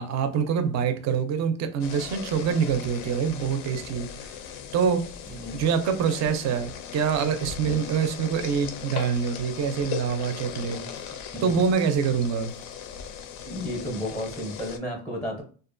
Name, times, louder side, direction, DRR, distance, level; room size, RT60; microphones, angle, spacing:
voice 1, 0.0-4.3 4.7-5.1 5.5-10.8 11.4-12.5, right 6 dB, 40° right, 0.4 m, -25 dB
sound 1, 1.8-14.8, left 8 dB, 70° left, 0.5 m, -38 dB
voice 2, 5.3-5.6 7.3-7.9 10.6-11.6 13.4-15.4, equal, ahead, 0.6 m, -35 dB
2.5 x 2.1 x 2.5 m
supercardioid pair, 120°, 44 cm